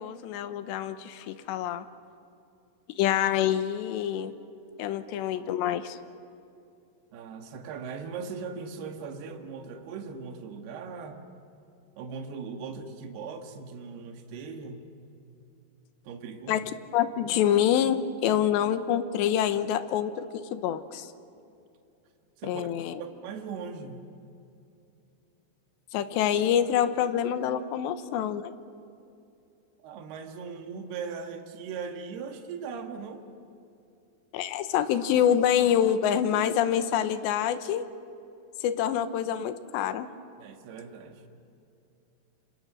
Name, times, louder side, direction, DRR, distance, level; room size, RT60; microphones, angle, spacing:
voice 1, 0.0-1.9 3.0-4.3 4.8-6.0 16.5-16.6 16.9-20.3 20.5-21.1 22.4-23.0 25.9-28.5 34.3-37.8 38.6-40.1, left 10 dB, 90° left, 10 dB, 3.2 m, -26 dB
voice 2, 7.1-11.2 12.0-14.9 16.1-16.6 22.4-22.7 23.0-24.1 29.8-33.2 40.4-41.2, right 5 dB, 70° right, 4 dB, 3.5 m, -39 dB
29.0 x 27.0 x 6.3 m, 2.7 s
omnidirectional pair, 5.0 m